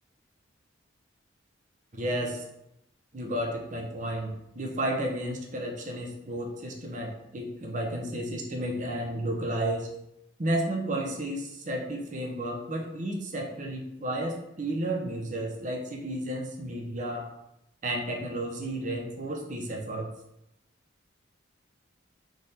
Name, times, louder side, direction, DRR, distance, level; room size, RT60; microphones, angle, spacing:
voice 1, 1.9-2.4 3.1-9.9 10.4-17.3 17.8-20.1, right 1 dB, 40° right, 1 dB, 0.7 m, -32 dB
3.7 x 3.3 x 4.2 m, 0.81 s
head